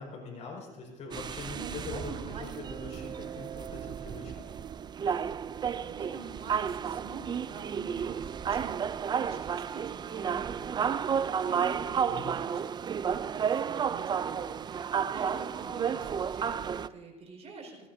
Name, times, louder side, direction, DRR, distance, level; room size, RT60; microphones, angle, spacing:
voice 1, 0.0-4.5 12.0-12.3, left 3 dB, 50° left, 0 dB, 4.9 m, -43 dB
sound 1, 1.1-16.9, right 7 dB, 30° right, 0.4 m, -32 dB
voice 2, 1.5-2.6 5.6-17.9, right 4 dB, 45° right, 1 dB, 5.0 m, -47 dB
19.5 x 17.5 x 2.7 m, 1.3 s
cardioid pair, 110°, 15 cm